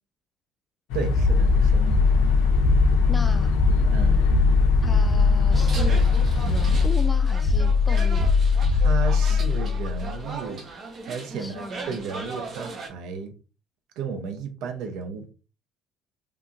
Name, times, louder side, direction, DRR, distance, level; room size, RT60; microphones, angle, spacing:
sound 1, 0.9-6.9, left 1 dB, 85° left, 0.6 m, -25 dB
voice 1, 0.9-2.1 3.7-4.2 8.7-10.6 11.0-13.3 14.0-15.3, right 6 dB, 70° right, 0.7 m, -34 dB
sound 2, 1.1-10.2, left 5 dB, 40° left, 0.8 m, -20 dB
voice 2, 3.1-3.5 4.8-6.0 6.4-8.3 9.3-9.4 11.3-12.0, left 1 dB, 15° left, 0.3 m, -36 dB
sound 3, 5.5-12.9, right 4 dB, 40° right, 1.0 m, -38 dB
3.4 x 2.8 x 2.5 m
cardioid pair, 125°, 0 cm